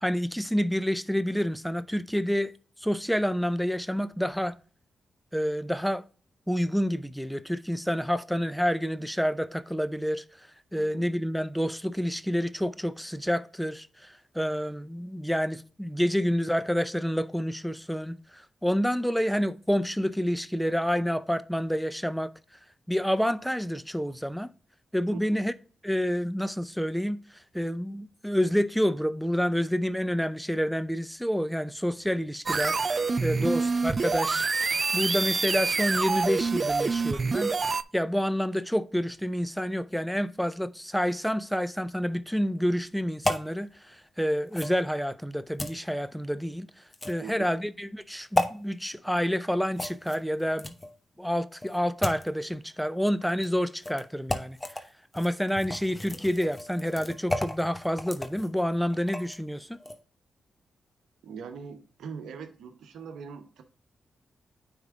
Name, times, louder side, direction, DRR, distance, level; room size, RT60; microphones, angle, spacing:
voice 1, 0.0-2.5 2.8-4.5 5.3-6.0 6.5-22.3 22.9-24.5 24.9-25.5 25.8-34.5 34.9-37.5 37.9-46.7 47.1-50.7 51.2-54.8 55.1-59.8, equal, ahead, 0.5 m, -28 dB
voice 2, 10.7-11.1 25.1-25.2 33.4-33.5 47.2-47.4 61.2-63.6, right 6 dB, 85° right, 0.8 m, -41 dB
sound 1, 32.5-37.8, right 4 dB, 50° right, 0.4 m, -26 dB
sound 2, 43.2-43.5 44.5-44.8 45.6-45.8 46.9-47.3 48.3-48.5 49.7-50.9 51.6-52.3 53.3-53.5 53.8-54.0 54.3-54.8 55.1-59.4 59.8-60.0, left 1 dB, 20° left, 1.1 m, -33 dB
9.4 x 3.6 x 3.6 m
supercardioid pair, 50°, 0 cm